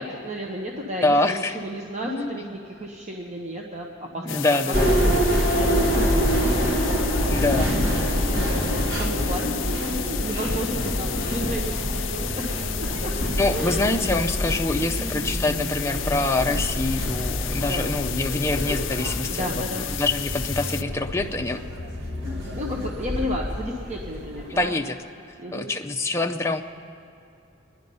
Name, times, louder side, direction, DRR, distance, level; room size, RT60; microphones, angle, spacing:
voice 1, 0.0-4.4 4.7-5.0 5.5-7.4 7.7-13.1 13.5-14.1 14.7-15.3 17.6-18.0 19.3-19.9 22.6-24.8 25.4-25.7, equal, 35° right, -1 dB, 0.9 m, -33 dB
voice 2, 1.0-1.6 2.0-2.5 4.1-4.9 7.3-7.7 9.4-9.5 13.4-19.6 20.0-21.6 24.6-25.0 25.5-26.6, left 2 dB, 15° left, 4 dB, 0.5 m, -25 dB
sound 1, 4.3-20.8, left 15 dB, 70° left, 0.3 m, -34 dB
sound 2, 4.7-24.6, equal, 65° right, 1.7 m, -26 dB
24.5 x 10.5 x 5.4 m, 2.6 s
head